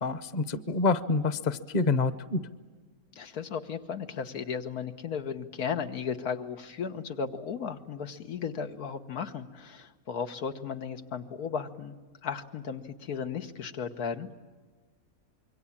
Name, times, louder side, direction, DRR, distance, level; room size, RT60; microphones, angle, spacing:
voice 1, 0.0-2.4, left 3 dB, 35° left, 14 dB, 0.9 m, -27 dB
voice 2, 3.1-12.0 12.2-14.3, left 6 dB, 90° left, 7 dB, 1.7 m, -35 dB
26.5 x 23.0 x 8.6 m, 1.4 s
omnidirectional pair, 1.5 m